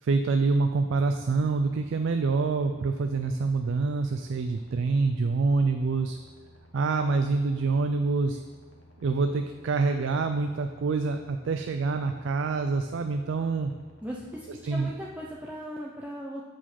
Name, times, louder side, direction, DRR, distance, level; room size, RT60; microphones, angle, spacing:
voice 1, 0.0-6.2 6.7-8.4 9.0-13.7 14.7-14.9, right 4 dB, 65° right, 7 dB, 0.4 m, -26 dB
sound 1, 0.9-15.4, equal, 70° left, 1.2 m, -55 dB
voice 2, 14.0-16.4, equal, 5° right, -4 dB, 0.5 m, -38 dB
7.5 x 4.9 x 4.2 m, 1.4 s
head